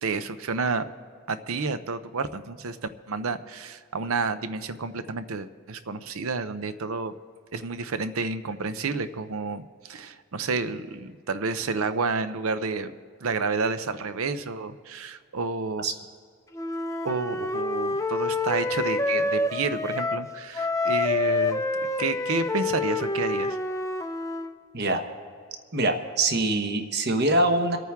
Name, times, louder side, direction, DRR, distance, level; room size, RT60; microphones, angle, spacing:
voice 1, 0.0-0.9 1.3-7.1 7.5-12.9 13.2-15.9 17.0-21.6 22.0-23.6, right 4 dB, 75° right, 12 dB, 0.6 m, -30 dB
Wind instrument woodwind instrument, 16.5-20.3 20.5-24.5, left 2 dB, 15° left, 0.4 m, -27 dB
voice 2, 25.7-27.8, right 2 dB, 45° right, 6 dB, 1.1 m, -24 dB
27.5 x 9.2 x 3.6 m, 2.1 s
head